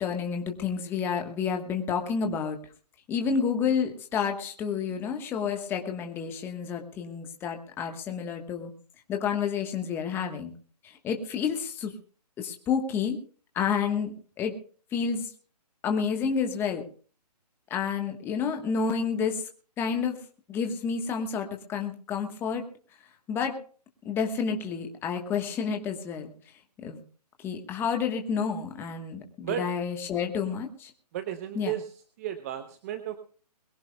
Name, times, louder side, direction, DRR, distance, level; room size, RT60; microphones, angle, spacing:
voice 1, 0.0-2.6 3.1-8.7 9.1-10.5 10.8-11.9 12.4-13.2 13.5-14.1 14.4-14.5 14.9-15.3 15.8-16.8 17.7-19.4 19.8-20.2 20.5-22.6 23.3-23.6 24.0-26.3 26.8-27.0 27.4-30.9 31.5-31.8, left 6 dB, 10° left, 4 dB, 1.2 m, -29 dB
voice 2, 31.1-31.9 32.2-33.2, right 10 dB, 25° right, 10 dB, 0.7 m, -33 dB
22.5 x 16.0 x 2.3 m, 0.40 s
hypercardioid pair, 155°, 21 cm